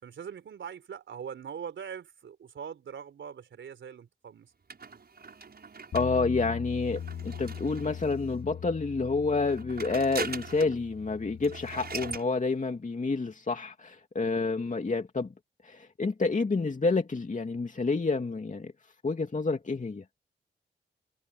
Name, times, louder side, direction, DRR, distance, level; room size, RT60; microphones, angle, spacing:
voice 1, 0.0-4.5, right 7 dB, 75° right, 4.4 m, -42 dB
sound 1, 4.7-8.3 9.3-10.8 11.1-11.2 11.4-12.3, right 4 dB, 55° right, 6.8 m, -41 dB
Bass guitar, 5.9-12.2, left 8 dB, 80° left, 2.6 m, -40 dB
voice 2, 5.9-15.3 15.6-18.7 19.0-20.0, left 3 dB, 40° left, 2.6 m, -29 dB
supercardioid pair, 45°, 20 cm